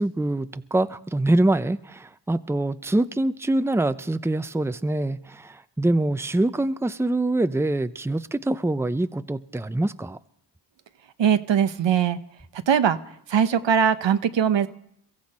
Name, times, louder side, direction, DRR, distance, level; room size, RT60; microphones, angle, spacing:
voice 1, 0.0-10.2, right 2 dB, 5° right, 0.7 m, -24 dB
voice 2, 11.2-12.2 12.7-13.0 13.3-14.7, right 8 dB, 75° right, 1.0 m, -20 dB
23.0 x 14.5 x 4.3 m
cardioid pair, 45°, 45 cm